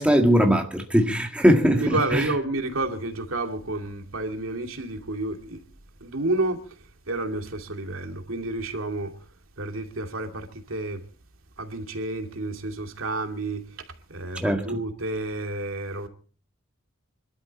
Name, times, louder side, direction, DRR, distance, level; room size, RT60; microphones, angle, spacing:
voice 1, 0.0-2.2 14.4-14.7, equal, 5° right, 1.8 m, -20 dB
voice 2, 1.7-5.6 6.0-6.7 7.1-9.1 9.6-11.0 11.6-13.6 14.1-16.1, right 2 dB, 70° right, 2.5 m, -30 dB
26.0 x 12.5 x 4.2 m
head